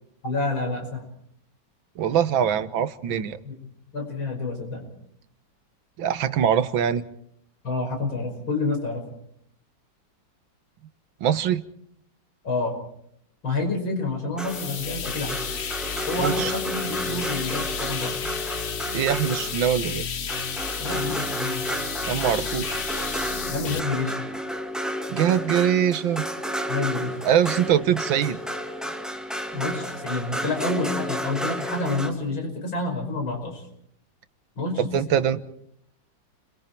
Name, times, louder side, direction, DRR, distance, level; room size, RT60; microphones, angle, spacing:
voice 1, 0.2-1.0 3.1-3.2 3.4-3.6 3.9-4.8 7.6-9.0 12.4-12.8 13.4-15.4 16.1-18.2 20.8-21.7 23.5-24.2 26.7-27.2 29.5-33.7 34.6-35.2, left 3 dB, 85° left, 4 dB, 6.1 m, -28 dB
voice 2, 2.0-3.4 6.0-7.0 11.2-11.6 16.2-16.5 18.9-20.1 22.1-22.8 25.1-26.2 27.3-28.4 34.9-35.4, right 9 dB, 80° right, 12 dB, 1.8 m, -23 dB
sound 1, 14.4-23.8, left 7 dB, 45° left, 0.9 m, -32 dB
sound 2, 14.4-19.8 20.3-32.1, equal, ahead, 2.0 m, -31 dB
30.0 x 23.0 x 4.4 m, 0.70 s
omnidirectional pair, 2.1 m